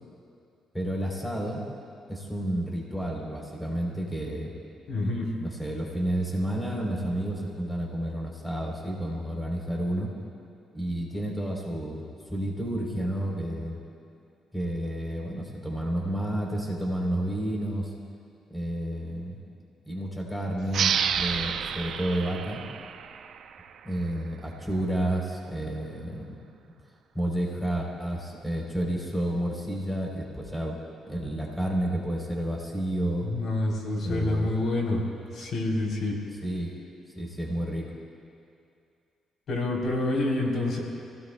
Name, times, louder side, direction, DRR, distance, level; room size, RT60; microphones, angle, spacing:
voice 1, 0.7-1.6 2.1-4.5 5.4-10.1 10.7-13.8 14.5-17.9 18.5-19.4 19.9-22.6 23.8-26.2 27.1-30.8 31.1-33.2 34.0-34.7 36.4-36.7 37.2-37.9, right 1 dB, 5° left, -2 dB, 3.5 m, -30 dB
voice 2, 4.9-5.3 22.3-22.4 33.2-35.1 35.3-36.2 39.5-40.8, left 2 dB, 65° left, -1 dB, 3.4 m, -27 dB
sound 1, 20.7-24.0, right 8 dB, 65° right, 0.5 m, -30 dB
28.5 x 17.5 x 2.2 m, 2.5 s
cardioid pair, 90°, 0 cm